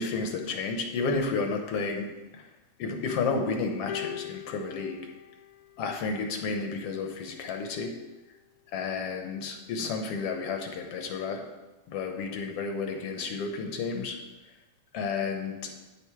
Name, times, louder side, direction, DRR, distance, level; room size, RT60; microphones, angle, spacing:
voice 1, 0.0-2.1 2.8-5.0 5.8-7.9 8.7-11.4 11.9-14.2 14.9-15.6, left 4 dB, 65° left, 4 dB, 1.7 m, -31 dB
sound 1, 3.9-6.4 7.4-7.5, left 12 dB, 85° left, 2.0 m, -42 dB
10.0 x 6.9 x 4.6 m, 1.1 s
omnidirectional pair, 3.4 m